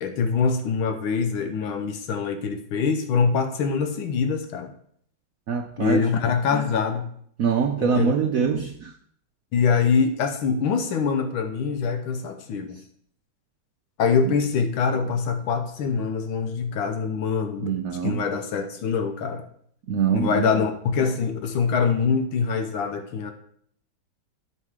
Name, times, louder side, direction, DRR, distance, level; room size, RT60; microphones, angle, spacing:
voice 1, 0.0-4.7 5.8-7.1 7.8-8.1 9.5-12.8 14.0-17.7 18.0-19.4 20.1-23.3, left 5 dB, 85° left, 7 dB, 1.7 m, -24 dB
voice 2, 5.5-6.1 7.4-8.9 14.2-14.4 17.6-18.2 19.9-20.5, right 6 dB, 70° right, 5 dB, 0.8 m, -24 dB
13.0 x 5.5 x 3.6 m, 0.65 s
omnidirectional pair, 2.2 m